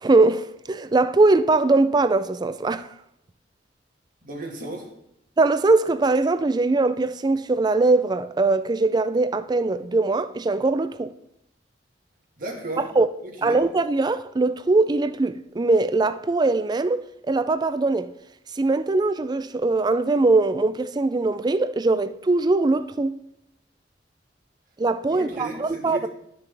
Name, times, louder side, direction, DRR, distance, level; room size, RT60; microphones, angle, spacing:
voice 1, 0.0-2.9 5.4-11.1 12.8-13.1 13.4-18.1 18.6-23.2 24.8-26.1, right 3 dB, 25° right, 0.4 m, -21 dB
voice 2, 4.2-4.9 12.4-12.9 13.2-13.6 25.1-26.1, right 2 dB, 50° right, 1.9 m, -34 dB
12.0 x 5.8 x 3.4 m
head